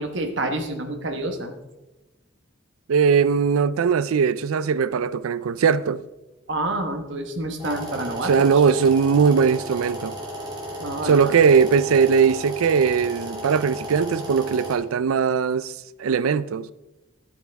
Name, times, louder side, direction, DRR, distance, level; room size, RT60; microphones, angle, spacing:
voice 1, 0.0-1.5 6.5-8.5 10.8-11.3, right 1 dB, 60° right, 1.2 m, -28 dB
voice 2, 2.9-6.0 8.2-10.2 11.0-16.7, right 6 dB, 90° right, 0.4 m, -20 dB
sound 1, 7.6-14.8, equal, 20° right, 2.2 m, -34 dB
11.0 x 8.3 x 3.5 m
head